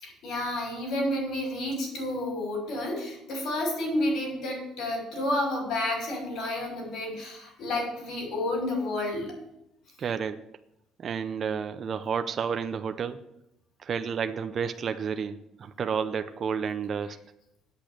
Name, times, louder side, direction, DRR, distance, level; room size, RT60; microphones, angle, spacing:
voice 1, 0.0-9.3, left 1 dB, 60° left, 0 dB, 5.7 m, -30 dB
voice 2, 10.0-10.5 11.0-13.2 13.8-17.3, right 6 dB, 35° right, 9 dB, 0.6 m, -31 dB
8.6 x 8.3 x 7.7 m, 0.81 s
cardioid pair, 170°, 0 cm